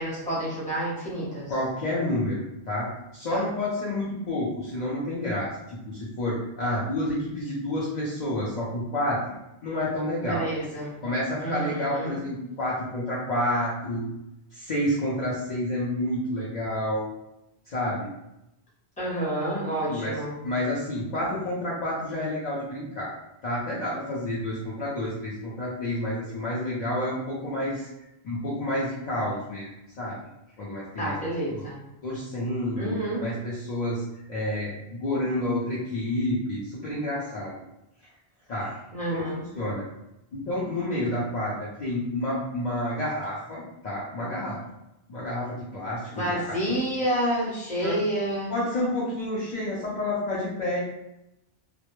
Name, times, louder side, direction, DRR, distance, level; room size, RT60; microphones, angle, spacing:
voice 1, 0.0-1.5 3.3-3.4 10.2-10.9 11.4-12.2 19.0-20.3 30.9-31.8 32.8-33.2 38.9-39.4 46.1-48.6, right 1 dB, 10° left, -7 dB, 0.6 m, -29 dB
voice 2, 1.5-2.9 3.1-9.4 9.6-10.5 11.0-14.1 14.5-17.1 17.7-18.1 19.6-20.2 20.4-23.1 23.4-27.9 28.2-29.7 30.0-30.2 30.6-31.1 31.5-31.6 32.0-34.0 34.3-37.5 38.5-38.7 39.0-39.8 40.3-44.6 45.1-46.4 46.7-46.8 47.8-48.0 48.5-50.8, left 1 dB, 50° left, -6 dB, 0.5 m, -29 dB
2.1 x 2.0 x 2.9 m, 0.89 s
omnidirectional pair, 1.1 m